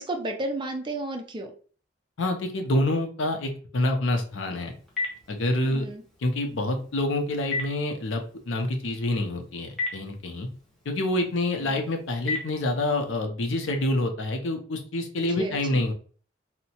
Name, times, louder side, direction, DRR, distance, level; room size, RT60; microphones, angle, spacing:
voice 1, 0.0-1.5 5.6-6.0 11.6-11.8 15.4-15.8, right 1 dB, 25° right, 3 dB, 0.4 m, -33 dB
voice 2, 2.2-4.7 5.3-5.9 6.2-10.5 10.9-15.9, left 1 dB, 80° left, 4 dB, 0.6 m, -27 dB
Telephone, 4.3-13.1, left 3 dB, ahead, 0.9 m, -38 dB
2.8 x 2.1 x 2.8 m, 0.42 s
head